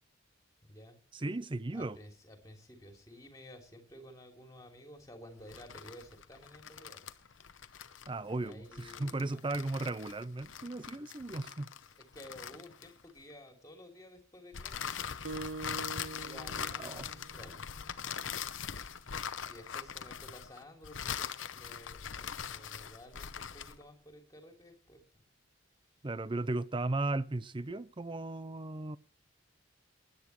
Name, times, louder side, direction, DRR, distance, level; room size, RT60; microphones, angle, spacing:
voice 1, 1.1-2.0 8.1-11.7 16.8-17.1 26.0-29.0, right 2 dB, 25° right, 0.5 m, -36 dB
voice 2, 1.7-7.1 8.4-9.4 12.1-14.8 16.2-17.6 19.5-25.0, equal, 15° left, 3.0 m, -53 dB
sound 1, 5.4-13.2 14.5-23.8, left 7 dB, 70° left, 0.8 m, -42 dB
Acoustic guitar, 15.2-18.0, right 3 dB, 70° right, 1.3 m, -44 dB
20.0 x 10.5 x 3.2 m
head